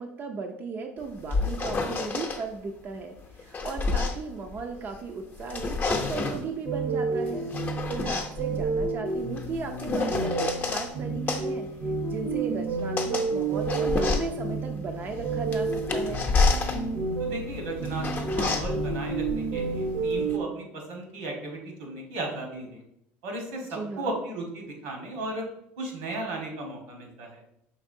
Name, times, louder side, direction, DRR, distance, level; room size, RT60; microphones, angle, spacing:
voice 1, 0.0-7.5 7.9-16.3 23.7-24.1, right 4 dB, 35° right, 3 dB, 0.4 m, -36 dB
sound 1, 1.0-2.4 3.2-5.0 5.4-6.5 7.3-10.9 11.3-20.4, left 4 dB, 30° left, 0.6 m, -30 dB
sound 2, 6.6-20.4, right 4 dB, 60° right, 0.7 m, -30 dB
sound 3, 14.9-19.9, left 4 dB, 80° left, 0.5 m, -43 dB
voice 2, 17.2-22.8 23.2-25.4 25.8-27.4, right 2 dB, 85° right, 1 dB, 1.3 m, -35 dB
5.3 x 3.4 x 2.6 m, 0.78 s
supercardioid pair, 105°, 6 cm